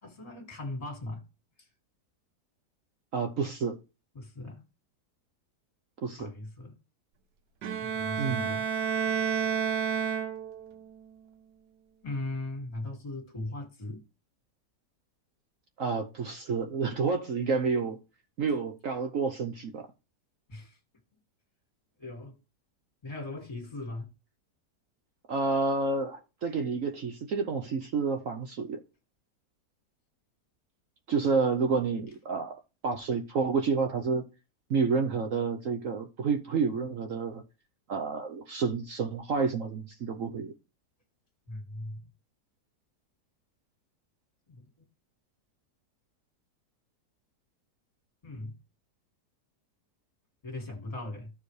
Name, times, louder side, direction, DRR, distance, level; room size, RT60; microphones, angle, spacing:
voice 1, 0.0-1.2 1.6-1.7 4.1-4.6 6.2-6.7 7.8-8.6 12.0-14.0 20.5-20.8 22.0-22.4 23.0-24.1 41.5-42.1 44.5-44.6 48.2-48.5 50.4-51.3, left 2 dB, 20° left, 2.2 m, -39 dB
voice 2, 3.1-3.8 6.0-6.3 8.2-8.5 15.8-18.0 18.4-19.9 25.3-28.8 31.1-34.3 34.7-37.4 37.9-40.5, right 4 dB, 55° right, 1.1 m, -29 dB
Bowed string instrument, 7.6-10.8, right 7 dB, 80° right, 1.5 m, -30 dB
14.0 x 4.9 x 3.2 m
omnidirectional pair, 1.8 m